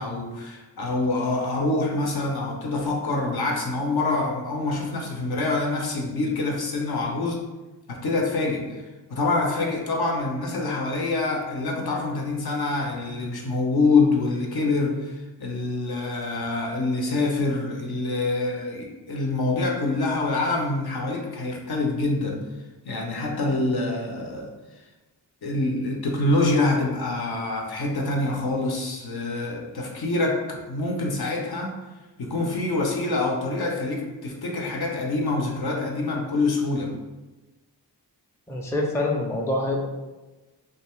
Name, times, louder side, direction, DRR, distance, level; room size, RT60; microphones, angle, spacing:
voice 1, 0.0-7.4 7.9-8.7 9.1-22.4 22.8-24.5 25.4-31.7 32.2-36.9, left 2 dB, 60° left, 0 dB, 0.7 m, -26 dB
voice 2, 38.5-39.9, left 1 dB, 5° left, -1 dB, 0.4 m, -25 dB
2.5 x 2.3 x 3.0 m, 1.2 s
cardioid pair, 55°, 42 cm